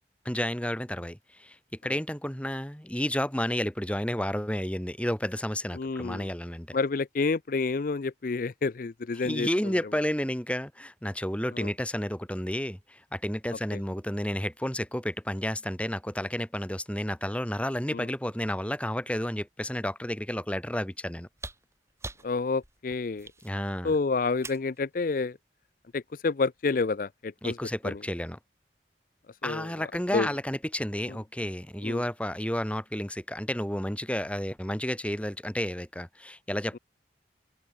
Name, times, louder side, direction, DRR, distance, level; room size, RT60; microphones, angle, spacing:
voice 1, 0.3-1.6 1.8-6.8 9.2-21.3 23.4-23.9 27.4-28.4 29.4-36.8, left 1 dB, 5° left, 1.9 m, -31 dB
voice 2, 5.8-6.3 6.7-9.7 11.5-11.7 13.7-13.8 17.9-18.1 22.2-23.3 23.8-25.4 25.9-27.6 27.8-28.0 29.4-29.9 30.1-30.3 31.8-32.0, left 4 dB, 50° left, 0.5 m, -29 dB
sound 1, 21.3-24.8 26.2-26.3, right 2 dB, 15° right, 7.4 m, -44 dB
head